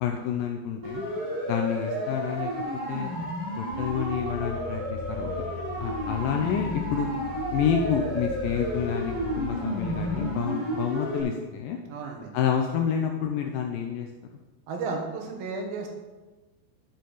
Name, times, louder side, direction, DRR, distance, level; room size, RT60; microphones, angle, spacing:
voice 1, 0.0-1.0 1.5-2.5 2.9-3.1 3.6-5.5 5.8-7.1 7.5-11.8 12.3-14.1, left 8 dB, 90° left, 3 dB, 2.0 m, -28 dB
Siren, 0.8-11.2, equal, 30° right, 0.6 m, -32 dB
sound 1, 3.7-10.3, left 5 dB, 60° left, 2.7 m, -39 dB
voice 2, 11.9-12.3 14.7-15.9, right 4 dB, 70° right, 2 dB, 2.8 m, -33 dB
11.0 x 6.5 x 4.0 m, 1.2 s
omnidirectional pair, 4.6 m